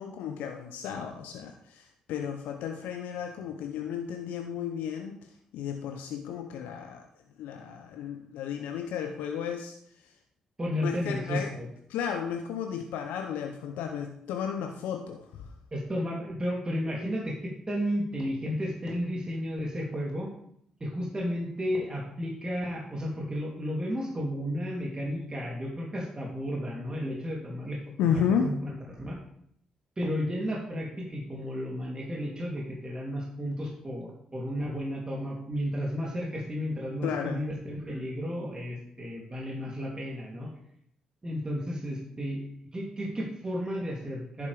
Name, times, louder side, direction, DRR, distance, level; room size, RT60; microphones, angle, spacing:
voice 1, 0.0-7.1 7.4-9.8 10.0-10.1 10.8-11.5 11.9-15.5 28.0-28.5 37.0-37.4, left 8 dB, 75° left, 5 dB, 0.7 m, -33 dB
voice 2, 10.6-11.7 15.7-20.3 20.8-29.2 30.0-40.5 41.2-42.4 42.7-44.5, equal, 30° right, -3 dB, 3.1 m, -33 dB
11.0 x 8.4 x 3.5 m, 0.68 s
hypercardioid pair, 40°, 3 cm